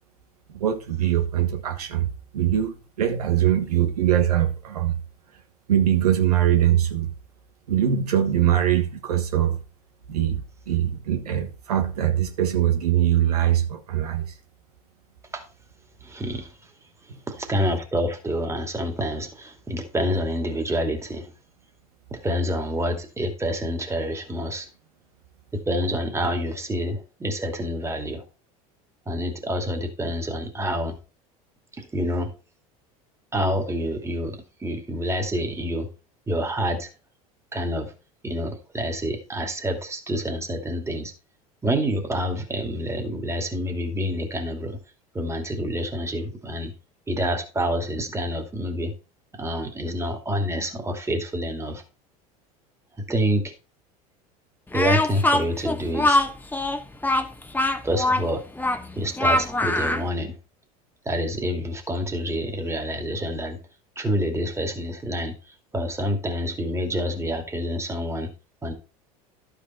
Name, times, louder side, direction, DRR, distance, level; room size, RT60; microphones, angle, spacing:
voice 1, 0.5-5.0 5.7-7.1 7.7-9.6 10.1-14.3, right 11 dB, 85° right, 1.3 m, -22 dB
voice 2, 16.0-16.5 17.3-21.3 22.1-24.7 25.5-28.2 29.1-30.9 31.8-32.3 33.3-35.9 36.3-36.9 37.5-37.9 38.2-41.1 41.6-44.8 45.1-46.7 47.1-48.9 49.3-51.8 53.1-53.5 54.7-56.2 57.8-58.4 59.0-60.4 61.1-63.6 64.0-65.3 65.7-68.3 68.6-68.7, equal, 15° right, 2.4 m, -27 dB
Speech, 54.7-60.1, left 2 dB, 10° left, 1.1 m, -23 dB
11.5 x 5.3 x 4.4 m
hypercardioid pair, 85°, 19 cm